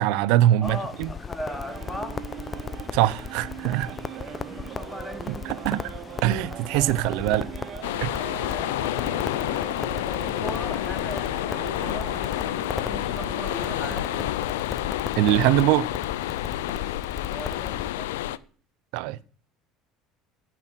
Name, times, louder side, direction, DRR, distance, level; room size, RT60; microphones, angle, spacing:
voice 1, 0.0-1.1 2.9-3.9 5.4-5.8 6.2-7.5 8.0-8.3 15.2-15.9 18.9-19.2, right 14 dB, 70° right, 0.7 m, -22 dB
Crackle, 0.6-17.9, left 6 dB, 30° left, 0.8 m, -37 dB
voice 2, 0.6-2.2 4.2-5.5 10.2-12.1 12.5-14.1 17.2-18.4, left 1 dB, 10° left, 3.5 m, -39 dB
sound 1, 1.5-14.3, right 10 dB, 55° right, 1.1 m, -40 dB
sound 2, 7.8-18.4, left 15 dB, 85° left, 0.5 m, -29 dB
17.0 x 6.0 x 6.3 m
hypercardioid pair, 80°, 0 cm